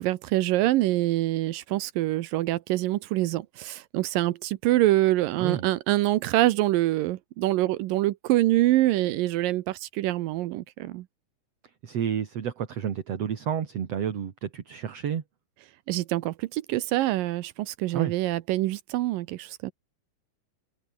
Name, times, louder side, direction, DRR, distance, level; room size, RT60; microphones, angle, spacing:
voice 1, 0.0-11.1 15.9-19.7, right 16 dB, 80° right, 2.5 m, -25 dB
voice 2, 11.8-15.2 17.9-18.1, right 8 dB, 50° right, 2.7 m, -30 dB
omnidirectional pair, 4.0 m